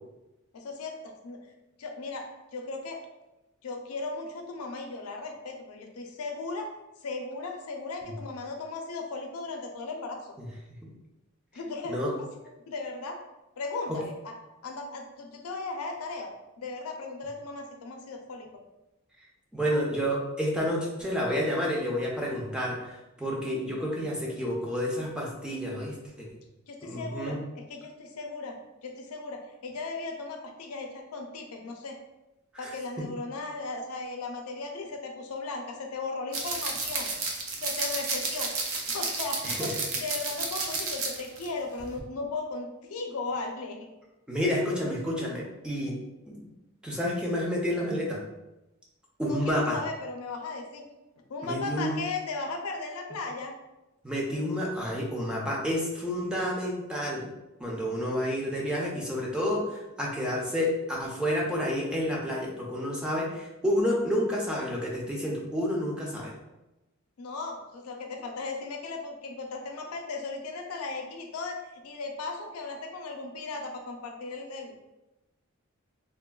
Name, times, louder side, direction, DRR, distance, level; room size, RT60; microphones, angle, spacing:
voice 1, 0.5-1.5 1.8-3.0 3.6-6.7 7.0-10.3 11.5-12.3 12.7-13.2 13.6-14.3 14.6-16.3 16.6-18.5 26.7-32.0 32.6-37.1 37.6-38.5 38.9-43.8 49.2-50.8 51.3-53.5 60.0-60.1 67.2-71.6 71.8-74.7, left 3 dB, 85° left, 3 dB, 0.4 m, -36 dB
voice 2, 19.5-26.3 26.8-27.4 32.5-32.7 33.0-33.1 39.4-39.7 44.3-46.0 46.3-46.5 46.8-48.2 49.2-49.8 51.4-52.0 54.0-57.3 57.6-66.3, equal, 5° right, -3 dB, 0.4 m, -30 dB
sound 1, 36.3-41.5 41.8-42.0, right 3 dB, 70° right, 0.5 m, -32 dB
3.3 x 2.2 x 2.3 m, 0.99 s
head